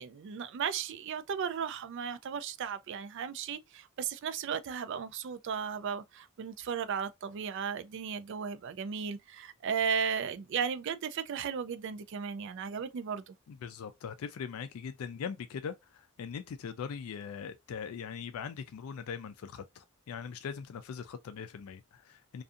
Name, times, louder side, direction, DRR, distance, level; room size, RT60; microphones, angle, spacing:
voice 1, 0.0-13.3, right 7 dB, 55° right, 0.3 m, -35 dB
voice 2, 13.5-22.4, left 6 dB, 75° left, 0.3 m, -41 dB
2.6 x 2.4 x 2.4 m
head